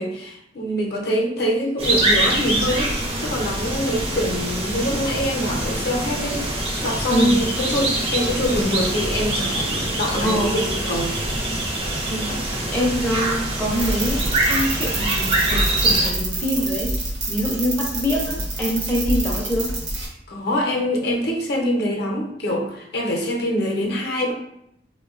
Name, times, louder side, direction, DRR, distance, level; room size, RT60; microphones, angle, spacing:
voice 1, 0.0-11.1 20.3-24.3, equal, 65° left, 0 dB, 0.6 m, -24 dB
sound 1, 1.8-16.1, right 1 dB, 35° right, 0.6 m, -24 dB
voice 2, 7.1-7.4 10.1-10.6 12.1-16.9 17.3-19.7, equal, 10° left, -3 dB, 0.5 m, -25 dB
sound 2, 13.7-20.1, right 2 dB, 90° right, 0.9 m, -27 dB
3.4 x 2.2 x 2.4 m, 0.79 s
head